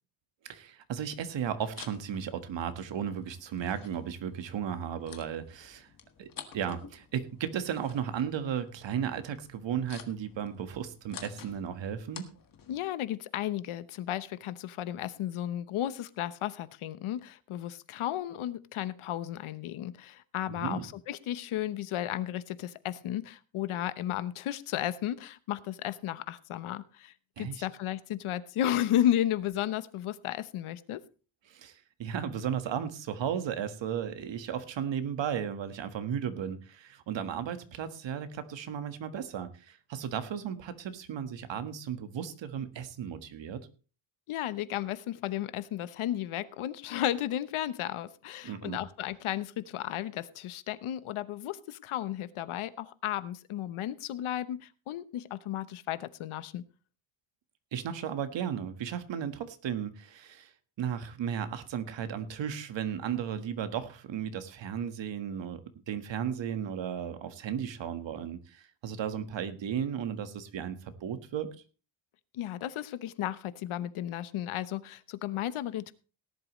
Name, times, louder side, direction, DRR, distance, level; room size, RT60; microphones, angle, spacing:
voice 1, 0.4-5.9 6.2-12.2 20.5-20.9 27.4-27.6 31.5-43.7 48.4-48.8 57.7-60.5 60.8-65.6 65.9-71.5, right 8 dB, 60° right, 9 dB, 1.6 m, -35 dB
sound 1, 1.4-12.8, left 7 dB, 40° left, 1.6 m, -51 dB
voice 2, 12.7-31.0 44.3-56.6 72.3-75.9, left 12 dB, 85° left, 14 dB, 1.0 m, -34 dB
18.0 x 11.5 x 3.1 m, 0.35 s
cardioid pair, 175°, 49 cm